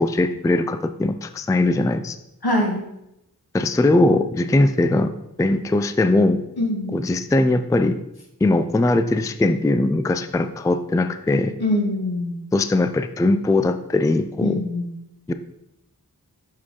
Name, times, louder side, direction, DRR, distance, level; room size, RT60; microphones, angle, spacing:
voice 1, 0.0-2.2 3.5-5.1 5.4-6.4 6.9-8.0 8.4-11.5 12.5-14.6 15.3-15.4, left 2 dB, 10° left, 10 dB, 0.3 m, -20 dB
voice 2, 2.4-2.8 6.6-7.0 11.6-12.4 14.4-14.9, left 1 dB, 75° left, 1 dB, 1.5 m, -23 dB
6.4 x 6.1 x 3.7 m, 0.84 s
wide cardioid pair, 45°, 38 cm